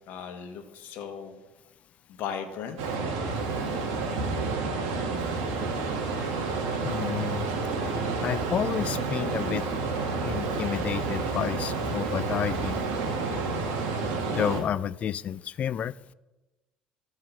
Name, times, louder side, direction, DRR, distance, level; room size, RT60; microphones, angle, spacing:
voice 1, 0.1-1.4 2.1-2.8, left 7 dB, 70° left, 7 dB, 1.4 m, -37 dB
sound 1, 2.8-14.6, right 4 dB, 80° right, 1.8 m, -29 dB
voice 2, 6.8-7.4 8.2-9.7 10.2-12.8 14.3-15.9, left 9 dB, 45° left, 20 dB, 0.3 m, -30 dB
13.5 x 4.8 x 5.9 m, 1.1 s
supercardioid pair, 85°, 3 cm